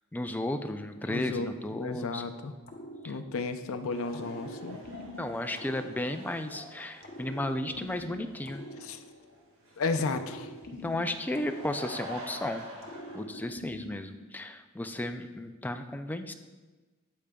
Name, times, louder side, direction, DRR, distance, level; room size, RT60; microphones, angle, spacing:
voice 1, 0.1-2.3 3.0-3.2 5.2-8.6 10.8-12.6 13.1-16.3, left 1 dB, 10° left, 8 dB, 0.3 m, -34 dB
voice 2, 1.1-2.5 3.1-4.8 8.8-9.0 9.8-10.5, left 3 dB, 65° left, 8 dB, 0.5 m, -33 dB
sound 1, 2.6-3.6 4.1-6.5 7.0-9.4 9.9-12.3 12.8-14.3, equal, 45° left, 0.8 m, -45 dB
sound 2, 3.9-13.2, equal, 65° right, 1.8 m, -47 dB
8.6 x 8.4 x 2.3 m, 1.3 s
head